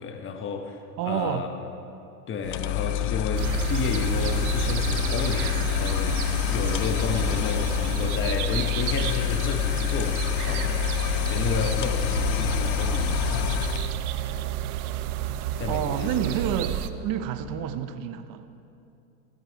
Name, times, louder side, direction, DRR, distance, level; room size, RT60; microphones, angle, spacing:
voice 1, 0.0-1.5 2.3-13.9 15.2-16.1, left 5 dB, 30° left, 5 dB, 1.2 m, -32 dB
voice 2, 1.0-1.4 15.7-18.5, right 9 dB, 50° right, 10 dB, 1.0 m, -29 dB
sound 1, 2.4-14.0, left 16 dB, 45° left, 0.6 m, -27 dB
sound 2, 3.3-16.9, right 10 dB, 80° right, 0.8 m, -30 dB
16.5 x 13.5 x 4.7 m, 2.7 s
supercardioid pair, 105°, 43 cm